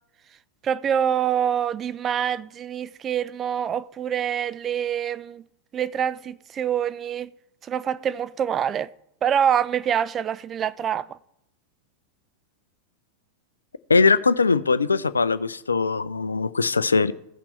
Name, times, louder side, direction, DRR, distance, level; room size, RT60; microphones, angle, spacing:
voice 1, 0.6-5.4 5.7-7.3 7.7-8.9 9.2-11.2, right 9 dB, 25° right, 0.3 m, -25 dB
voice 2, 13.9-17.1, left 4 dB, 75° left, 0.4 m, -21 dB
15.5 x 5.8 x 3.2 m
figure-of-eight pair, 90°, 0 cm